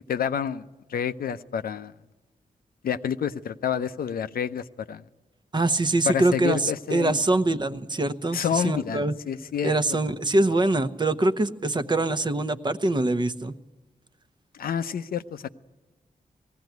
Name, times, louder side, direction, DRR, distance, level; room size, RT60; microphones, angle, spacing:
voice 1, 0.1-1.9 2.8-5.0 6.1-7.3 8.3-9.8 14.5-15.5, left 8 dB, 90° left, 10 dB, 0.7 m, -29 dB
voice 2, 5.5-9.1 9.6-13.5, right 2 dB, 30° right, 11 dB, 0.9 m, -24 dB
19.5 x 15.5 x 9.3 m, 1.2 s
wide cardioid pair, 90°, 15 cm